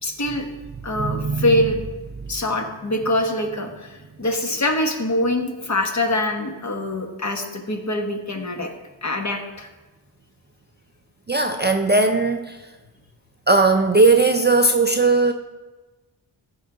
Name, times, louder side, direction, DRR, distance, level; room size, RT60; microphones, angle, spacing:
voice 1, 0.0-0.4 0.8-1.8 2.3-8.7 9.0-9.7, left 1 dB, 40° left, 3 dB, 1.3 m, -24 dB
voice 2, 1.0-1.5 11.3-12.6 13.5-15.3, right 3 dB, 25° right, 5 dB, 0.5 m, -18 dB
14.0 x 4.8 x 3.8 m, 1.2 s
wide cardioid pair, 85°, 46 cm